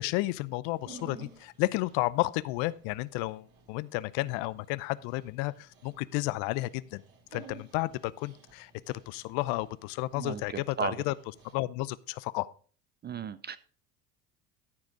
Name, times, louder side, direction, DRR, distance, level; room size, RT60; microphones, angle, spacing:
voice 1, 0.0-7.0 7.3-11.1 11.5-12.5, left 19 dB, 65° left, 0.6 m, -32 dB
Dog, 0.7-11.5, right 4 dB, 50° right, 2.6 m, -54 dB
voice 2, 10.1-11.0 13.0-13.6, right 7 dB, 25° right, 0.4 m, -35 dB
13.5 x 4.9 x 4.9 m
hypercardioid pair, 75°, 46 cm